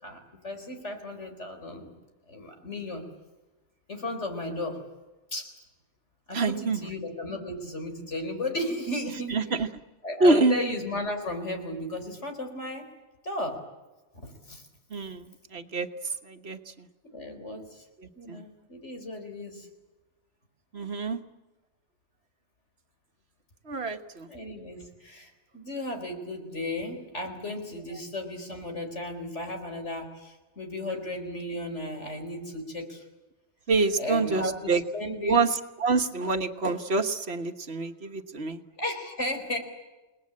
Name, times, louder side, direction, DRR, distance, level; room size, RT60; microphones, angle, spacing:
voice 1, 0.0-1.9 2.3-3.0 3.9-4.8 5.3-5.5 6.3-9.3 10.0-12.9 13.2-13.6 14.1-14.6 17.1-17.8 18.2-19.7 24.3-33.0 34.0-35.4 38.8-39.6, left 1 dB, 75° left, 5 dB, 4.6 m, -35 dB
voice 2, 6.3-6.8 9.3-9.7 10.2-10.6 14.9-15.9 16.2-16.9 18.0-18.4 20.7-21.2 23.7-24.3 33.7-34.8 35.2-38.6, right 3 dB, 60° right, 7 dB, 1.7 m, -26 dB
29.0 x 20.0 x 8.7 m, 1.1 s
omnidirectional pair, 1.2 m